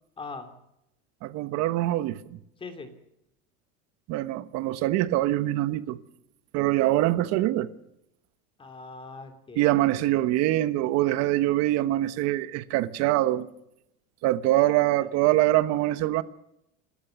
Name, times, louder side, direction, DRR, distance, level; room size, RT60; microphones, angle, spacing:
voice 1, 0.2-0.5 2.6-2.9 8.6-9.6 9.9-10.0 14.5-15.1, left 3 dB, 15° left, 2.9 m, -41 dB
voice 2, 1.2-2.4 4.1-6.0 6.5-7.7 9.6-13.5 14.2-16.2, right 15 dB, 50° right, 1.2 m, -24 dB
28.0 x 13.5 x 7.1 m
cardioid pair, 160°, 33 cm